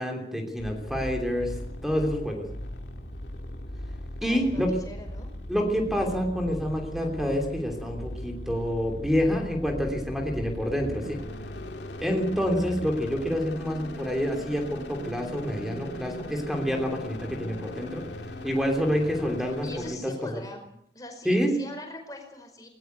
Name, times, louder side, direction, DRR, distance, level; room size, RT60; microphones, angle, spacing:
voice 1, 0.0-1.5 1.8-2.4 4.2-4.7 5.5-11.2 12.0-18.0 18.4-19.7 20.0-20.4 21.2-21.5, equal, ahead, 2 dB, 3.1 m, -27 dB
sound 1, 0.6-19.9, left 1 dB, 85° left, 2.3 m, -39 dB
voice 2, 4.2-5.3 8.2-8.3 19.4-20.6 20.9-22.7, left 1 dB, 20° left, 4 dB, 5.0 m, -42 dB
19.0 x 19.0 x 8.2 m, 0.73 s
head